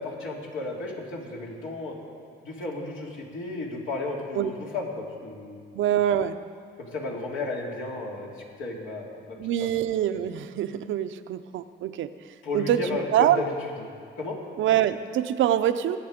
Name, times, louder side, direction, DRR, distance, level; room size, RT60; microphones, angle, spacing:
voice 1, 0.0-1.9 2.4-5.6 6.8-9.7 12.4-14.4, left 2 dB, 80° left, -2 dB, 2.7 m, -34 dB
voice 2, 5.7-6.4 9.4-12.1 12.5-12.8 13.1-13.4 14.6-16.0, right 11 dB, 75° right, 10 dB, 0.6 m, -24 dB
20.0 x 8.9 x 5.1 m, 2.3 s
cardioid pair, 90°, 20 cm